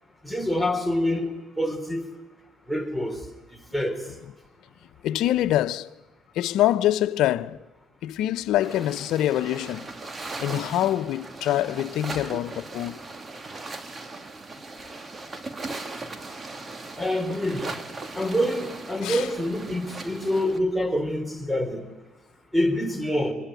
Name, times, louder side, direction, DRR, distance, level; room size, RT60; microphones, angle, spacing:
voice 1, 0.2-1.3 1.6-2.1 2.7-3.2 3.7-4.0 17.0-17.6 18.1-21.8 22.5-23.3, left 1 dB, ahead, 4.2 m, -26 dB
voice 2, 5.0-5.9 6.3-7.6 8.0-9.9 10.4-13.0 19.0-19.3, left 13 dB, 75° left, 1.0 m, -25 dB
sound 1, 8.6-20.6, right 3 dB, 30° right, 2.6 m, -38 dB
26.0 x 23.0 x 9.3 m
supercardioid pair, 85°, 0 cm